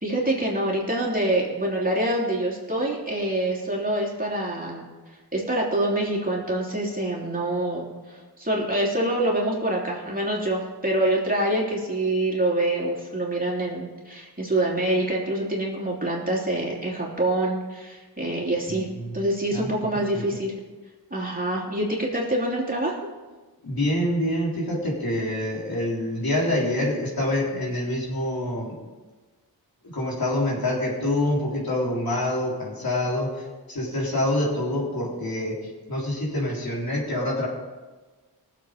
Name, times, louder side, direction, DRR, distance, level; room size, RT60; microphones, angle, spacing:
voice 1, 0.0-4.9 5.3-18.9 19.1-20.5 21.1-23.0, right 1 dB, 20° right, -4 dB, 3.3 m, -26 dB
voice 2, 18.7-19.1 19.5-19.7 20.1-20.2 23.6-28.8 29.9-35.6 35.9-37.5, left 1 dB, 60° left, -4 dB, 3.8 m, -26 dB
18.5 x 7.5 x 5.1 m, 1.3 s
cardioid pair, 55°, 40 cm